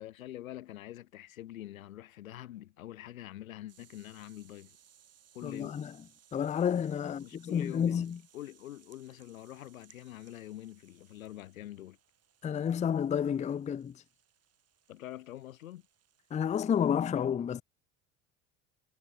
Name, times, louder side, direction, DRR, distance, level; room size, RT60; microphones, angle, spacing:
voice 1, 0.0-4.8 5.3-5.8 7.0-12.0 14.9-15.8, left 13 dB, 80° left, 1.2 m, -45 dB
sound 1, 3.7-17.1, right 9 dB, 35° right, 3.2 m, -65 dB
voice 2, 5.4-5.9 6.3-8.2 12.4-14.0 16.3-17.6, left 8 dB, 20° left, 0.5 m, -30 dB
hypercardioid pair, 75°, 41 cm